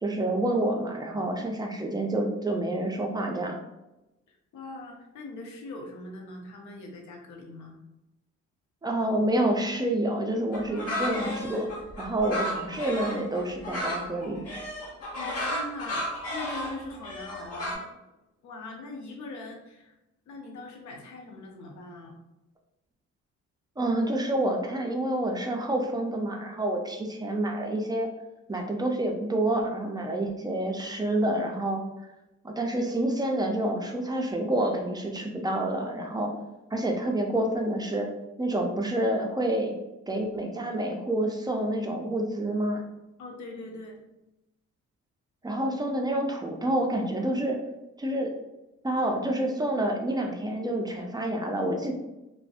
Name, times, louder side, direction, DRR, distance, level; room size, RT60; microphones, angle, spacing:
voice 1, 0.0-3.6 8.8-11.7 12.0-14.5 23.8-28.1 28.5-31.8 32.4-36.3 36.7-38.1 38.4-39.7 40.1-42.8 45.4-47.6 48.0-48.3 48.8-51.9, right 1 dB, 15° right, 1 dB, 0.4 m, -28 dB
voice 2, 4.3-7.8 15.2-16.0 16.3-17.9 18.4-19.9 20.3-22.2 43.2-44.0, left 2 dB, 75° left, 1 dB, 0.6 m, -41 dB
sound 1, 10.5-17.8, equal, 50° left, 0.9 m, -33 dB
2.5 x 2.1 x 2.4 m, 0.95 s
cardioid pair, 90°, 30 cm